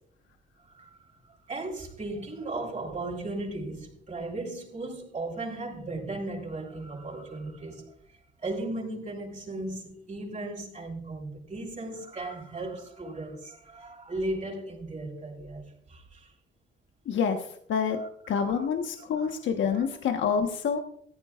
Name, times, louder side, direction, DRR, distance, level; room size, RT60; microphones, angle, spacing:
voice 1, 0.6-7.9 8.4-15.6 15.9-16.3 18.0-18.6 19.2-19.3 19.7-19.9, right 2 dB, 40° right, 6.0 m, -36 dB
voice 2, 17.0-18.0 18.3-20.8, left 6 dB, 70° left, 1.3 m, -27 dB
17.5 x 15.0 x 2.5 m
cardioid pair, 90°, 20 cm